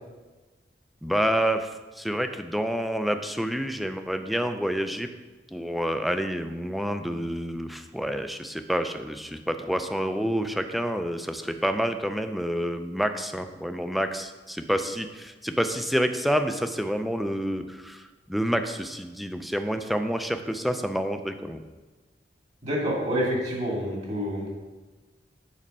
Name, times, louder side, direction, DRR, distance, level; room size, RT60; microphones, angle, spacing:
voice 1, 1.0-1.7 2.0-5.1 5.5-21.6, equal, ahead, 7 dB, 0.4 m, -28 dB
voice 2, 22.6-24.5, equal, 40° right, -3 dB, 2.1 m, -27 dB
7.4 x 4.3 x 5.4 m, 1.3 s
head